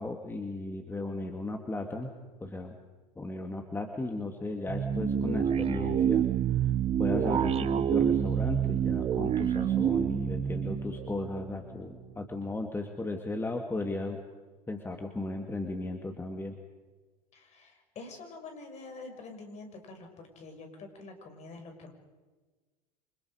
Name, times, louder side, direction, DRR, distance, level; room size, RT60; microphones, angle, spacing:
voice 1, 0.0-2.1 2.4-2.8 3.2-6.7 7.0-14.2 14.7-16.6, left 2 dB, 10° left, 4 dB, 2.4 m, -36 dB
sound 1, 4.7-11.9, right 9 dB, 30° right, 1.2 m, -28 dB
voice 2, 17.3-21.9, left 3 dB, 35° left, 4 dB, 6.3 m, -46 dB
28.5 x 26.0 x 5.1 m, 1.3 s
figure-of-eight pair, 80°, 20 cm